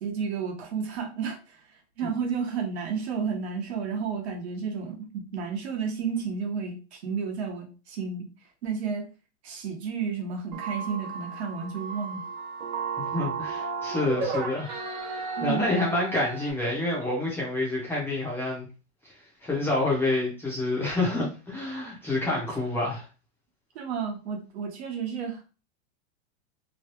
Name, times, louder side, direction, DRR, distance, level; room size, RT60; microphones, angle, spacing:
voice 1, 0.0-1.6 2.0-8.3 8.6-9.1 9.4-12.2 15.4-15.7 22.3-22.4 23.7-25.4, right 6 dB, 65° right, 3 dB, 1.1 m, -32 dB
sound 1, 10.5-16.5, right 4 dB, 35° right, 0.6 m, -34 dB
voice 2, 13.0-14.7 15.0-18.7 19.4-23.0, left 2 dB, 5° left, -5 dB, 0.6 m, -28 dB
3.1 x 2.3 x 3.0 m, 0.32 s
supercardioid pair, 165°, 35 cm